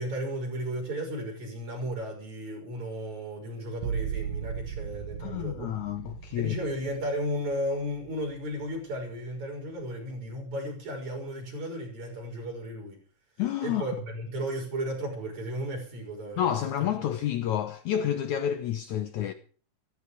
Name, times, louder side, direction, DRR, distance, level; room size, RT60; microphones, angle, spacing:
voice 1, 0.0-5.7 6.4-13.0 13.6-16.9, equal, 55° right, 7.4 m, -34 dB
sound 1, 3.8-9.3 9.7-10.3, right 7 dB, 75° right, 3.2 m, -38 dB
voice 2, 5.2-6.6 13.4-13.9 16.4-19.3, left 10 dB, 70° left, 2.1 m, -29 dB
15.5 x 15.0 x 5.1 m
omnidirectional pair, 3.9 m